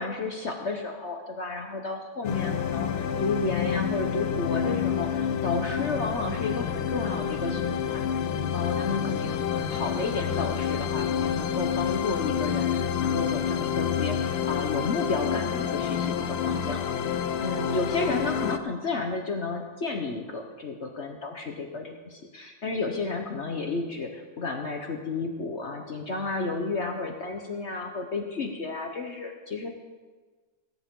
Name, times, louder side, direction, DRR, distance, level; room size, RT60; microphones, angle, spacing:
voice 1, 0.0-8.1 8.5-16.9 17.4-29.7, left 3 dB, 45° left, 3 dB, 0.9 m, -32 dB
sound 1, 2.2-18.6, left 8 dB, 75° left, 1.4 m, -28 dB
18.5 x 9.7 x 3.7 m, 1.3 s
omnidirectional pair, 2.2 m